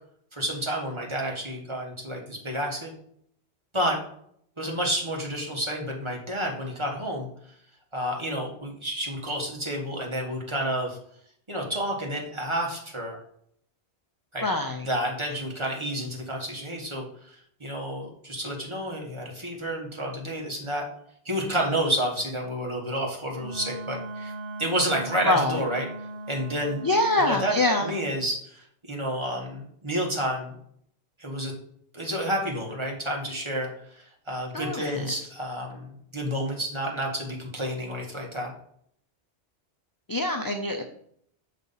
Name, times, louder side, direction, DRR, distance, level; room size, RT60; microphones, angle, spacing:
voice 1, 0.3-2.9 3.7-4.0 4.6-7.3 7.9-11.0 11.5-13.2 14.3-14.4 14.9-20.9 21.2-24.3 24.6-25.8 26.3-26.8 27.2-27.5 27.8-30.5 31.2-31.5 31.9-38.5, equal, 25° right, -1 dB, 1.3 m, -30 dB
voice 2, 14.4-14.9 25.2-25.6 26.8-28.0 34.5-35.1 40.1-40.8, left 2 dB, 35° left, 4 dB, 0.3 m, -25 dB
Wind instrument woodwind instrument, 23.4-28.1, right 2 dB, 60° right, 0.8 m, -38 dB
6.1 x 4.1 x 5.5 m, 0.68 s
omnidirectional pair, 1.1 m